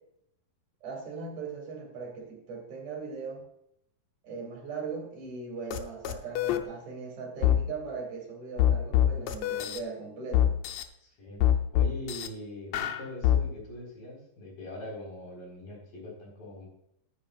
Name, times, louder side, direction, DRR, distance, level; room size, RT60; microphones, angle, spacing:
voice 1, 0.8-3.4 4.2-10.6, right 4 dB, 60° right, 1 dB, 3.6 m, -39 dB
sound 1, 5.7-5.8 6.0-6.6 7.4-7.6 8.6-9.8 10.3-10.8 11.4-12.3 12.7-13.4, left 11 dB, 85° left, 1.5 m, -24 dB
voice 2, 11.0-11.4 11.7-16.7, left 1 dB, 70° left, -3 dB, 6.0 m, -42 dB
13.5 x 9.9 x 2.5 m, 0.77 s
omnidirectional pair, 4.1 m